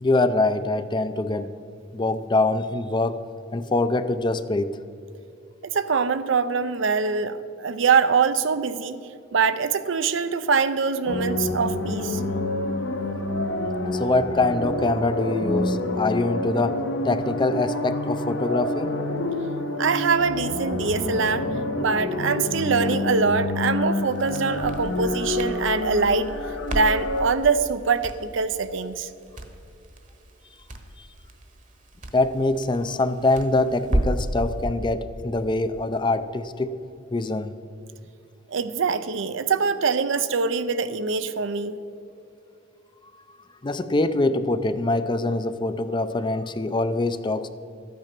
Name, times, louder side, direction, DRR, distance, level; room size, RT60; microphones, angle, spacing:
voice 1, 0.0-1.5 1.9-3.2 3.5-4.8 13.9-18.9 32.1-36.8 37.1-37.5 43.6-47.5, left 2 dB, 25° left, 12 dB, 0.5 m, -24 dB
voice 2, 5.6-9.0 9.3-12.2 19.8-21.5 21.8-26.3 26.7-29.1 38.5-41.8, right 5 dB, 70° right, 12 dB, 0.6 m, -23 dB
sound 1, 11.1-27.3, left 2 dB, 65° left, 1.1 m, -28 dB
Crackle, 24.1-34.3, right 1 dB, 40° right, 1.1 m, -33 dB
13.0 x 9.3 x 6.0 m, 2.6 s
head